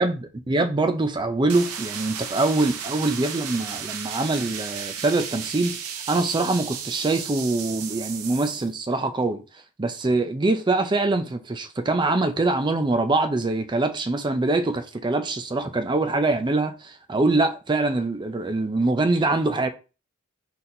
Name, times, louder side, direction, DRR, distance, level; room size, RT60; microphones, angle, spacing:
voice 1, 0.5-5.8 6.1-9.4 9.8-19.7, right 2 dB, 20° right, 0.4 m, -24 dB
sound 1, 1.5-8.7, right 7 dB, 90° right, 0.7 m, -34 dB
4.1 x 4.1 x 2.6 m
head